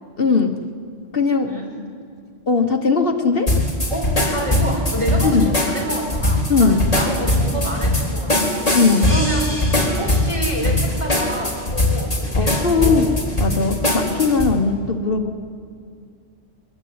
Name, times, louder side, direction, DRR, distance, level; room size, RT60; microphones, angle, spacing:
voice 1, 0.2-0.6 1.1-1.5 2.5-3.6 5.2-5.5 6.5-6.8 8.7-9.1 12.3-13.1 13.4-15.4, left 4 dB, 50° left, 5 dB, 1.5 m, -19 dB
sound 1, 3.5-14.5, left 1 dB, 30° left, 4.0 m, -20 dB
voice 2, 3.9-8.7 9.0-9.5 9.8-13.1 13.5-13.8, right 1 dB, 25° right, -1 dB, 5.3 m, -28 dB
23.0 x 22.5 x 9.6 m, 2.3 s
omnidirectional pair, 1.2 m